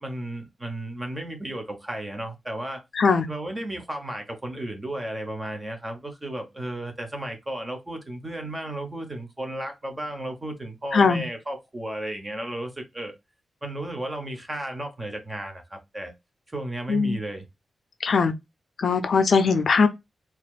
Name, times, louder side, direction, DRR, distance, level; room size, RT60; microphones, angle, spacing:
voice 1, 0.0-2.8 3.3-13.1 13.6-16.1 16.5-17.4, right 1 dB, 15° right, 1.0 m, -34 dB
voice 2, 2.9-3.3 10.9-11.2 16.9-17.2 18.0-18.3 18.8-19.9, left 5 dB, 55° left, 0.5 m, -20 dB
4.2 x 2.9 x 2.4 m
wide cardioid pair, 165°, 0 cm